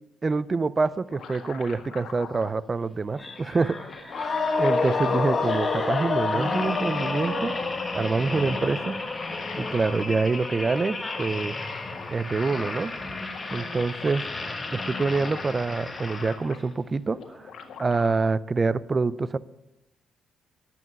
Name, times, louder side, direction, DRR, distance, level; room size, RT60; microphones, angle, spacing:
voice 1, 0.2-4.3 4.6-7.5 7.9-9.0 9.6-11.6 12.1-12.9 13.5-14.3 14.7-17.5 17.8-19.4, right 4 dB, 30° right, 18 dB, 0.4 m, -26 dB
sound 1, 0.8-2.5 3.5-3.6 3.9-5.2 5.9-6.7 7.2-8.3 8.9-10.1 11.0-12.5 12.7-12.8 13.0-14.2 14.6-16.8 17.1-18.1, left 6 dB, 65° left, 1.7 m, -43 dB
sound 2, 3.1-16.7 17.3-17.5, left 2 dB, 25° left, 1.4 m, -34 dB
sound 3, 4.1-8.1, left 4 dB, 40° left, 1.5 m, -27 dB
11.0 x 7.8 x 7.8 m, 0.92 s
cardioid pair, 90°, 0 cm